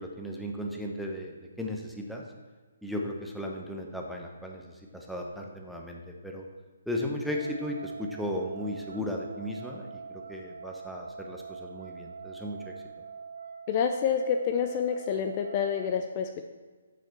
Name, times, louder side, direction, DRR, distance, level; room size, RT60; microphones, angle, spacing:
voice 1, 0.0-2.2 2.8-6.5 6.9-12.7, left 1 dB, ahead, -1 dB, 0.9 m, -36 dB
sound 1, 7.2-15.9, right 5 dB, 80° right, 0.7 m, -44 dB
voice 2, 13.7-16.5, left 7 dB, 35° left, 6 dB, 0.4 m, -28 dB
6.5 x 6.5 x 4.5 m, 1.4 s
hypercardioid pair, 145°, 0 cm